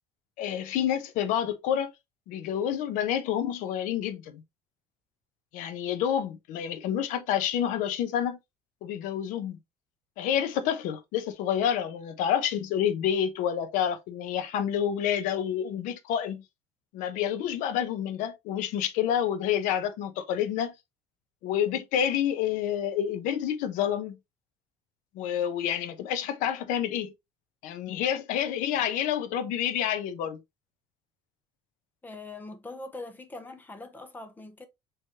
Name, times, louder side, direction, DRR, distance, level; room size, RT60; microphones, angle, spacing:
voice 1, 0.4-1.9 2.3-4.4 5.5-8.4 8.8-9.6 10.2-16.4 16.9-20.7 21.4-24.2 25.1-27.1 27.6-30.4, left 9 dB, 70° left, 0.9 m, -28 dB
voice 2, 32.0-34.7, left 2 dB, 15° left, 0.7 m, -42 dB
4.7 x 3.1 x 2.8 m
cardioid pair, 150°, 14 cm